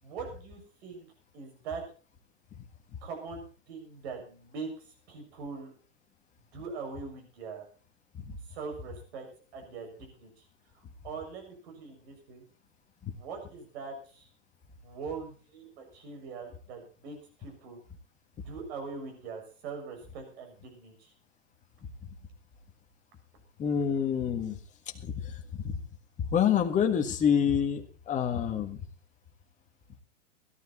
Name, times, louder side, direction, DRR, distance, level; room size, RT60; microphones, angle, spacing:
voice 1, 0.0-1.8 3.0-5.7 6.5-7.7 8.5-9.3 9.5-10.4 10.7-12.4 13.1-14.3 14.8-17.8 18.4-21.1, right 5 dB, 55° right, 4 dB, 6.7 m, -42 dB
voice 2, 23.6-24.6 25.0-25.7 26.3-28.8, left 8 dB, 20° left, 4 dB, 1.8 m, -27 dB
16.5 x 12.5 x 4.3 m, 0.39 s
hypercardioid pair, 135°, 37 cm